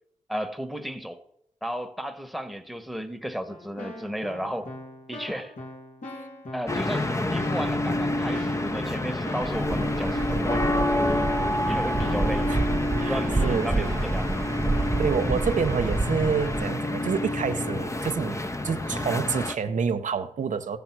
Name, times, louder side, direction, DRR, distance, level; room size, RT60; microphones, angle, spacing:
voice 1, 0.3-1.2 1.6-4.7 5.1-5.5 6.5-11.1 11.7-12.5 13.1-14.3 14.9-15.1, equal, ahead, 1.2 m, -34 dB
Keyboard (musical), 3.5-13.8, left 1 dB, 75° left, 2.5 m, -41 dB
sound 1, 6.7-19.5, left 1 dB, 25° left, 0.8 m, -28 dB
Waves surf, 9.4-16.7, right 3 dB, 20° right, 0.5 m, -29 dB
voice 2, 12.9-13.9 14.8-20.8, right 6 dB, 75° right, 0.8 m, -28 dB
15.0 x 6.9 x 6.0 m
cardioid pair, 50°, 13 cm